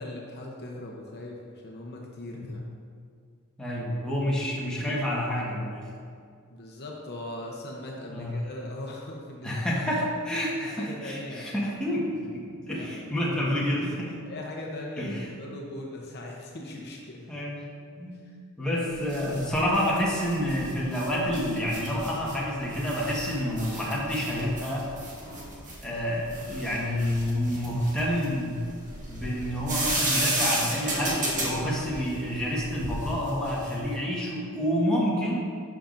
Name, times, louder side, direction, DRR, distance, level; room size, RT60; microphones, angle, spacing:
voice 1, 0.0-2.6 6.5-9.6 10.5-11.6 12.7-13.3 14.2-17.3 18.1-18.4, left 1 dB, 50° left, -1 dB, 0.8 m, -40 dB
voice 2, 3.6-5.9 8.1-8.3 9.4-14.1 15.0-15.3 17.3-17.6 18.0-18.2 18.6-24.9 25.8-28.6 29.1-35.4, equal, 5° left, -6 dB, 1.4 m, -28 dB
sound 1, 18.9-33.9, right 1 dB, 40° right, 1.6 m, -33 dB
11.0 x 5.7 x 2.6 m, 2.2 s
head